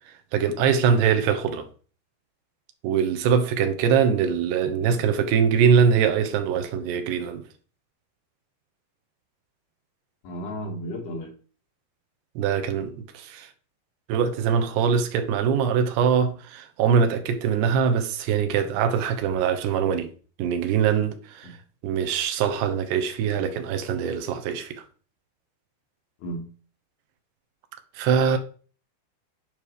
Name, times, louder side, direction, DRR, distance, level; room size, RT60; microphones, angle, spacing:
voice 1, 0.3-1.7 2.8-7.4 12.4-13.5 14.1-20.1 20.4-21.5 21.8-24.8 28.0-28.4, right 7 dB, 75° right, 2.7 m, -23 dB
voice 2, 10.2-11.3 21.4-21.5 26.2-26.4, equal, 60° left, 4.0 m, -33 dB
11.0 x 5.2 x 4.9 m
omnidirectional pair, 5.6 m